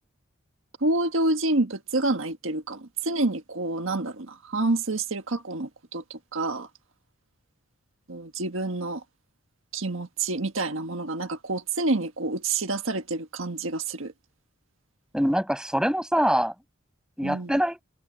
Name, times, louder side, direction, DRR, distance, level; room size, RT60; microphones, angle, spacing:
voice 1, 0.8-6.7 8.1-9.0 9.7-14.1 17.2-17.5, right 2 dB, 80° right, 1.6 m, -28 dB
voice 2, 15.1-16.5 17.2-17.8, equal, 5° right, 5.4 m, -24 dB
head